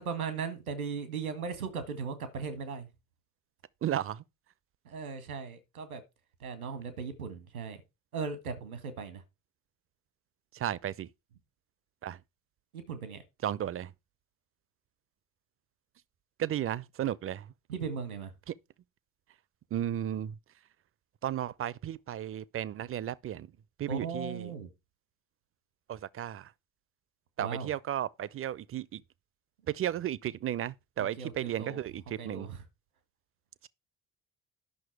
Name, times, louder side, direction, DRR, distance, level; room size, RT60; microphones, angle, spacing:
voice 1, 0.0-2.9 4.8-6.0 6.4-7.8 8.1-9.2 12.7-13.2 17.7-18.3 23.9-24.7 27.4-27.7 31.0-31.8 32.2-32.6, right 5 dB, 80° right, 1.8 m, -37 dB
voice 2, 3.8-4.2 10.5-11.1 12.0-12.2 13.4-13.9 16.4-17.5 18.5-18.6 19.7-20.4 21.2-23.5 23.8-24.5 25.9-26.5 27.4-29.0 29.7-32.5, right 11 dB, 30° right, 0.6 m, -34 dB
11.0 x 6.2 x 4.7 m
figure-of-eight pair, 50°, 42 cm